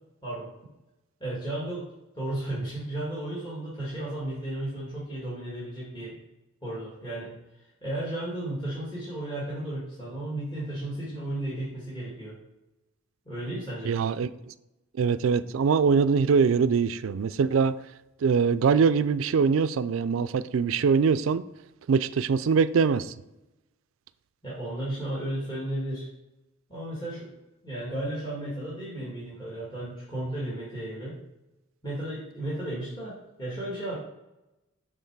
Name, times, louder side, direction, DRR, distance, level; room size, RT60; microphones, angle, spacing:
voice 1, 1.2-1.9 2.1-6.1 6.6-7.4 7.8-12.4 13.3-14.0 24.4-26.1 26.7-27.3 27.6-31.2 31.8-34.0, right 1 dB, 25° left, 1.9 m, -34 dB
voice 2, 13.8-14.3 15.0-17.7 18.2-21.4 21.9-23.1, right 5 dB, 80° right, 0.4 m, -23 dB
8.0 x 3.8 x 4.7 m
head